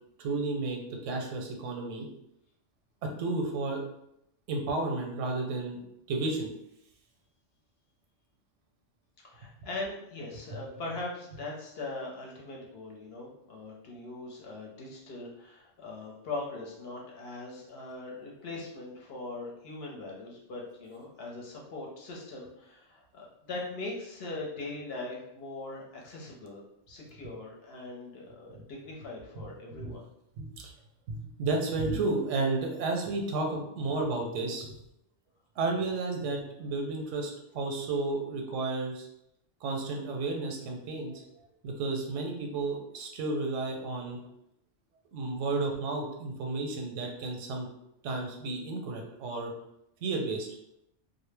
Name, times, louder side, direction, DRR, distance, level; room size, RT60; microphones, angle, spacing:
voice 1, 0.2-2.1 3.0-3.8 4.5-5.8 6.1-6.5 29.8-29.9 30.4-30.7 31.1-34.7 35.6-39.1 39.6-44.2 45.1-47.7 48.0-49.5 50.0-50.5, right 3 dB, 85° right, 2 dB, 0.9 m, -32 dB
voice 2, 9.2-30.0, left 2 dB, 65° left, -2 dB, 0.8 m, -41 dB
2.1 x 2.0 x 3.2 m, 0.80 s
omnidirectional pair, 1.2 m